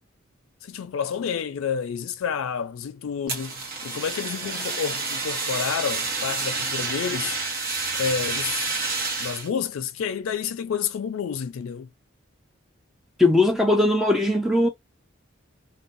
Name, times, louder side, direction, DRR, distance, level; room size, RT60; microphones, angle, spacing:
voice 1, 0.6-7.4 7.9-8.7 9.2-11.9, left 7 dB, 85° left, 0.4 m, -29 dB
Fire, 3.3-9.5, right 3 dB, 50° right, 0.9 m, -29 dB
voice 2, 13.2-14.7, left 2 dB, ahead, 0.4 m, -19 dB
2.6 x 2.2 x 2.4 m
head